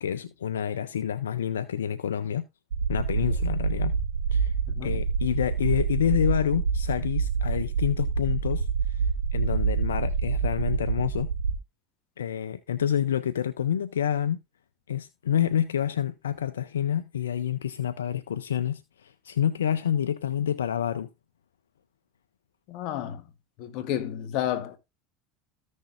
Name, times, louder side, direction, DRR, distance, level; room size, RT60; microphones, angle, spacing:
voice 1, 0.0-2.4 2.9-3.9 4.3-4.5 4.8-11.3 12.2-14.4 14.9-21.1, left 9 dB, 90° left, 0.4 m, -28 dB
sound 1, 2.7-11.6, right 5 dB, 80° right, 1.4 m, -27 dB
voice 2, 22.7-23.2 23.6-24.8, left 11 dB, 60° left, 1.3 m, -31 dB
14.5 x 6.3 x 2.5 m
hypercardioid pair, 85°, 0 cm